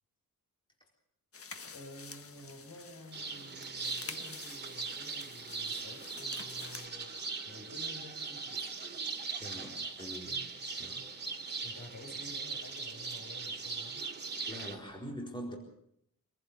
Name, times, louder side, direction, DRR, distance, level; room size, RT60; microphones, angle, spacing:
sound 1, 1.3-6.9, left 5 dB, 40° left, 1.5 m, -49 dB
voice 1, 1.7-8.7 11.1-14.0, left 1 dB, 60° left, 4 dB, 6.6 m, -51 dB
sound 2, 3.1-14.8, right 4 dB, 30° right, 2.7 m, -40 dB
voice 2, 9.4-10.5 10.8-11.1 14.5-15.6, equal, 15° left, 0 dB, 4.3 m, -43 dB
26.5 x 15.5 x 7.0 m, 0.72 s
wide cardioid pair, 135°, 34 cm